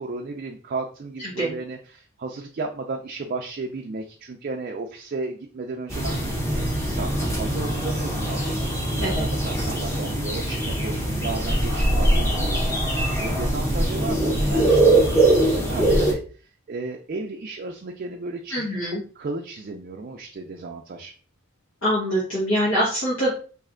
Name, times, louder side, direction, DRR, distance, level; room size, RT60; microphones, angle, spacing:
voice 1, 0.0-21.1, right 3 dB, 40° right, 2 dB, 0.4 m, -34 dB
voice 2, 1.2-1.5 9.0-9.2 18.5-19.0 21.8-23.3, equal, 70° left, -7 dB, 1.3 m, -24 dB
sound 1, 5.9-16.1, right 1 dB, 15° left, 0.9 m, -22 dB
3.2 x 2.6 x 3.7 m, 0.40 s
head